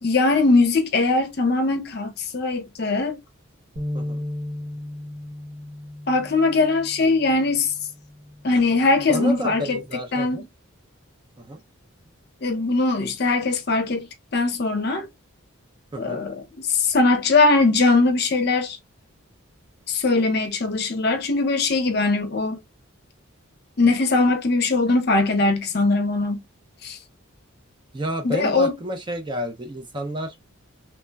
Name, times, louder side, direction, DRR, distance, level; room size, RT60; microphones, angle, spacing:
voice 1, 0.0-3.2 6.1-7.7 8.4-10.5 12.4-15.1 16.0-16.4 16.7-18.8 19.9-22.6 23.8-26.4 26.8-27.0 28.2-28.7, left 3 dB, 50° left, 0.6 m, -21 dB
sound 1, 3.8-10.0, left 1 dB, 65° right, 1.0 m, -36 dB
voice 2, 9.1-10.4 11.4-11.6 15.9-16.2 27.9-30.5, equal, 20° right, 0.4 m, -30 dB
3.1 x 2.0 x 2.2 m
head